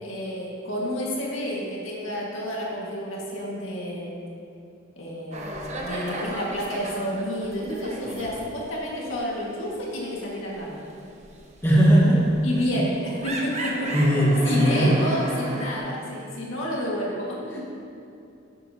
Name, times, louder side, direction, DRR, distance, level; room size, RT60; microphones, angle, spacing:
voice 1, 0.0-4.1 5.0-10.8 12.4-13.0 13.2-13.9 14.4-17.6, equal, 75° left, -4 dB, 1.9 m, -30 dB
sound 1, 5.3-8.7 8.9-9.2 9.6-15.8, right 2 dB, 35° right, 0.9 m, -35 dB
voice 2, 11.6-12.2 12.8-12.9 13.9-15.0, equal, 10° left, -6 dB, 1.5 m, -18 dB
10.5 x 8.4 x 2.8 m, 2.6 s
head